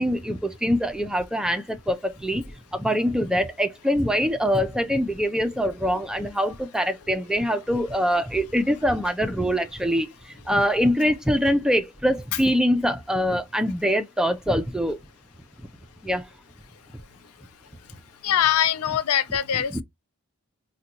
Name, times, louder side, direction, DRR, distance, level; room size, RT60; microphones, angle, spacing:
voice 1, 0.0-2.4 2.7-15.0 16.0-16.3 18.9-19.0 19.3-19.8, equal, 5° right, 0.3 m, -24 dB
voice 2, 18.2-19.8, left 10 dB, 90° left, 0.4 m, -22 dB
3.8 x 2.2 x 2.7 m
head